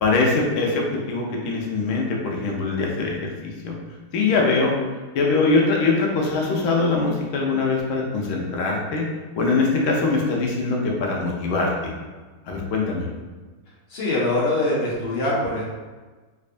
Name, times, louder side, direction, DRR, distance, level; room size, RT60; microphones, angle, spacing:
voice 1, 0.0-3.1 3.4-3.7 4.1-4.8 5.1-9.1 9.3-11.9 12.5-13.1, left 3 dB, 90° left, -1 dB, 1.5 m, -22 dB
voice 2, 13.9-15.6, left 1 dB, 50° left, -6 dB, 0.7 m, -23 dB
3.5 x 3.2 x 2.5 m, 1.3 s
omnidirectional pair, 2.2 m